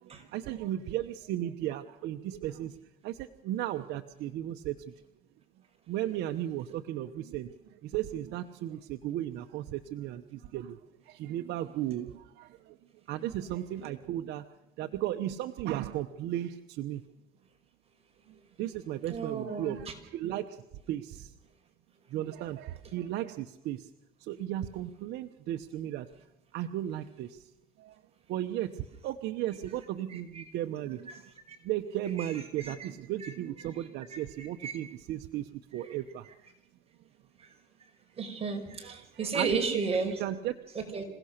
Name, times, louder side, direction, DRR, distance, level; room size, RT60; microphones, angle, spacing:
voice 1, 0.0-2.8 3.0-4.9 5.9-10.8 11.0-12.8 13.1-14.4 14.8-17.0 18.6-21.3 22.1-23.9 24.2-26.1 26.5-27.5 27.8-28.0 28.3-31.3 31.6-36.5 38.8-40.5, right 12 dB, 80° right, 6 dB, 1.0 m, -35 dB
voice 2, 19.1-19.9 30.1-30.4 31.1-31.2 31.5-31.6 32.2-32.9 33.2-33.3 34.1-34.8 35.8-36.0 37.4-37.5 38.1-40.2 40.7-41.1, right 4 dB, 35° right, 4 dB, 5.2 m, -34 dB
27.0 x 17.0 x 6.6 m, 0.91 s
cardioid pair, 110°, 17 cm